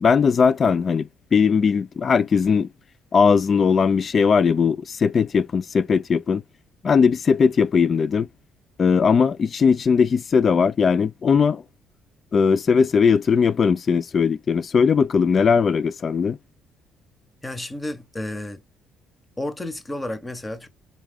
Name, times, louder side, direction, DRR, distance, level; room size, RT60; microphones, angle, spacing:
voice 1, 0.0-2.7 3.1-6.4 6.8-8.3 8.8-11.6 12.3-16.4, left 6 dB, 40° left, 0.3 m, -19 dB
voice 2, 17.4-18.6 19.4-20.7, left 1 dB, 15° left, 1.0 m, -31 dB
3.7 x 3.3 x 3.5 m
supercardioid pair, 85°, 0 cm